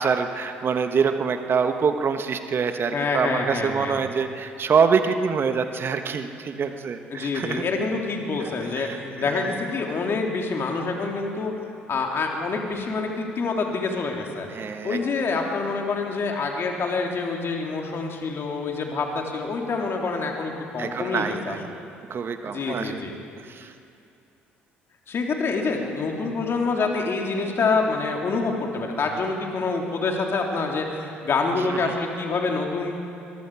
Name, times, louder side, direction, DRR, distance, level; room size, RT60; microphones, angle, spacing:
voice 1, 0.0-7.6 8.4-8.5 8.7-9.4 14.5-15.0 20.8-21.7 22.1-23.7 31.7-31.8, right 6 dB, 40° right, 7 dB, 1.3 m, -25 dB
voice 2, 2.9-4.0 7.1-11.5 11.9-14.5 14.8-21.5 22.5-23.2 25.1-33.0, left 4 dB, 45° left, 1 dB, 3.4 m, -26 dB
24.0 x 22.5 x 4.9 m, 2.6 s
figure-of-eight pair, 50°, 6 cm